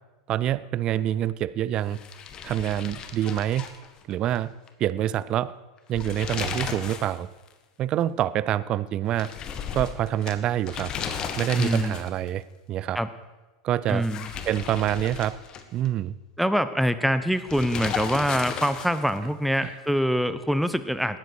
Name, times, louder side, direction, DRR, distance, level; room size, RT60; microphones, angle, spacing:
voice 1, 0.3-2.0 2.4-3.7 4.1-4.5 4.8-5.5 5.9-7.3 7.8-9.3 9.7-10.9 11.4-12.4 12.7-13.0 13.6-14.1 14.5-15.4 15.7-16.1 19.6-19.7, right 12 dB, 40° right, 18 dB, 0.6 m, -26 dB
sound 1, 1.9-4.4 4.7-4.8 5.8-7.2 7.5-7.6 9.2-12.3 13.9-15.9 17.5-19.2, left 7 dB, 35° left, 1.6 m, -35 dB
voice 2, 11.5-12.0 12.9-13.1 13.9-14.3 16.4-21.2, equal, ahead, 12 dB, 1.0 m, -24 dB
18.5 x 13.0 x 4.8 m, 1.2 s
figure-of-eight pair, 85°, 2 cm